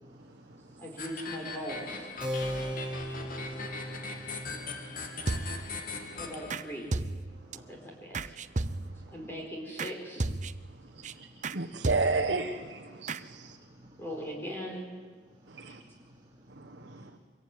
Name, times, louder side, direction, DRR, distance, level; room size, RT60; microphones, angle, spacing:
voice 1, 0.0-1.0 2.6-6.2 7.4-8.0 8.7-9.1 10.8-11.8 13.0-14.0 15.4-17.1, equal, 25° right, 3.0 m, -57 dB
voice 2, 0.8-2.1 6.1-6.9 7.7-8.2 9.1-10.2 14.0-14.9, equal, 15° left, 4.3 m, -39 dB
sound 1, 1.0-7.0, left 3 dB, 50° left, 2.7 m, -40 dB
Keyboard (musical), 2.2-8.3, equal, 5° right, 4.3 m, -40 dB
sound 2, 5.3-5.8 6.5-6.6 6.9-7.6 8.1-9.1 9.8-9.9 10.2-10.7 11.0-11.1 11.4-11.6 11.8-12.4 13.1-13.2, right 2 dB, 45° right, 0.8 m, -33 dB
voice 3, 11.5-13.5 15.6-15.8 16.7-17.2, right 3 dB, 70° right, 1.4 m, -31 dB
24.5 x 22.5 x 9.8 m
head